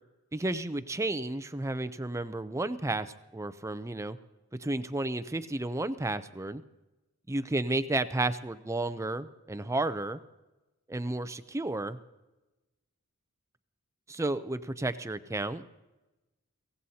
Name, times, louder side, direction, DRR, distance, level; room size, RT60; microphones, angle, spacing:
voice 1, 0.3-4.2 4.6-6.6 7.3-10.2 10.9-12.0 14.1-15.7, right 2 dB, 15° right, 12 dB, 0.5 m, -32 dB
23.5 x 16.5 x 2.8 m, 1.1 s
head